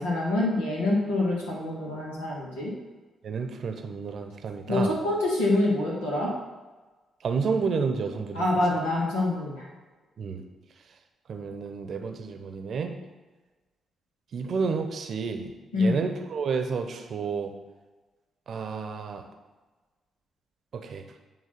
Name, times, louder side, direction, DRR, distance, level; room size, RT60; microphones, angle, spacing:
voice 1, 0.0-2.7 4.7-6.3 8.3-9.7 15.7-16.0, left 2 dB, 80° left, -5 dB, 1.8 m, -26 dB
voice 2, 3.2-4.9 7.2-8.4 10.2-10.4 11.3-12.9 14.3-17.5 18.5-19.2 20.7-21.0, right 5 dB, 55° right, 5 dB, 0.8 m, -30 dB
9.1 x 3.1 x 6.5 m, 1.2 s
hypercardioid pair, 40°, 0 cm